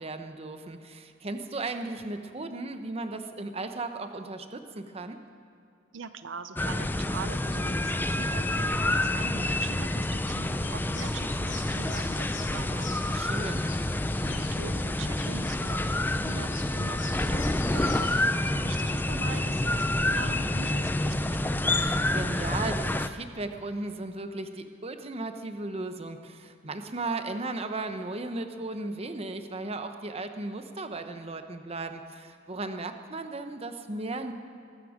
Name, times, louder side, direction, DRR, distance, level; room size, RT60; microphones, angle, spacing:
voice 1, 0.0-5.2 13.1-13.7 21.7-34.3, right 2 dB, 30° right, 7 dB, 0.9 m, -36 dB
voice 2, 5.9-13.2 14.2-21.8, right 5 dB, 80° right, 11 dB, 0.6 m, -42 dB
sound 1, 6.6-23.1, left 1 dB, 10° left, 0.4 m, -28 dB
sound 2, 10.6-18.1, left 5 dB, 80° left, 2.3 m, -45 dB
22.0 x 12.5 x 5.1 m, 2.5 s
head